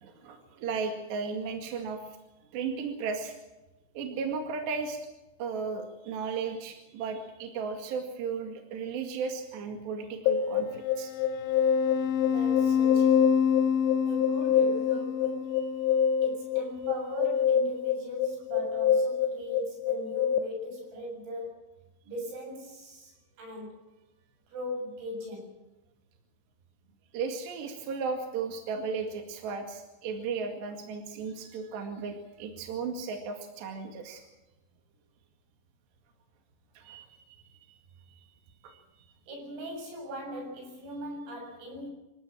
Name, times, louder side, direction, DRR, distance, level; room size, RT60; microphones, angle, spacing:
voice 1, 0.0-2.0 2.5-3.4 4.0-5.1 5.4-11.1 15.6-15.7 27.1-34.2 36.8-37.8 38.1-38.3 38.6-38.8, right 5 dB, 65° right, 4.0 m, -35 dB
sound 1, 10.3-20.4, left 7 dB, 75° left, 3.3 m, -25 dB
voice 2, 12.3-13.2 14.1-15.5 16.2-21.6 22.1-23.1 23.4-23.8 24.5-25.6 39.3-41.9, equal, 80° right, 9.8 m, -39 dB
26.0 x 16.0 x 7.5 m
omnidirectional pair, 5.8 m